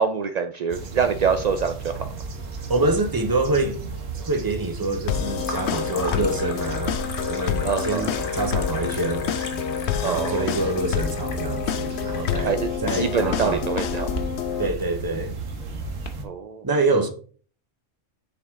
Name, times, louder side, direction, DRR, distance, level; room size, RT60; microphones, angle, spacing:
voice 1, 0.0-2.0 7.6-8.1 10.0-10.5 12.4-14.1 16.2-16.6, right 6 dB, 65° right, 0.4 m, -25 dB
sound 1, 0.7-16.3, right 4 dB, 80° right, 1.5 m, -34 dB
sound 2, 2.3-3.0 3.3-3.9 5.4-16.1, left 4 dB, 45° left, 1.0 m, -37 dB
voice 2, 2.7-3.8 4.2-7.0 7.3-9.3 10.0-13.7 14.6-15.3 16.6-17.1, right 2 dB, 20° right, 0.6 m, -26 dB
sound 3, 5.1-14.7, left 10 dB, 65° left, 0.8 m, -28 dB
7.0 x 4.8 x 3.6 m
omnidirectional pair, 1.3 m